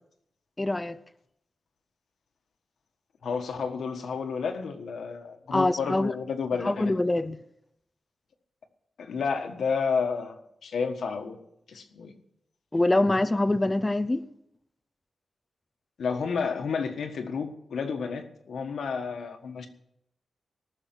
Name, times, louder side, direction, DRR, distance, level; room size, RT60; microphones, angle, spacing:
voice 1, 0.6-1.0 5.5-6.1 6.6-7.4 12.7-14.2, left 2 dB, 15° left, 0.5 m, -24 dB
voice 2, 3.2-6.9 9.0-11.4 11.7-12.1 16.0-19.7, left 5 dB, 80° left, 1.5 m, -31 dB
19.0 x 6.6 x 7.8 m
wide cardioid pair, 145°, 0 cm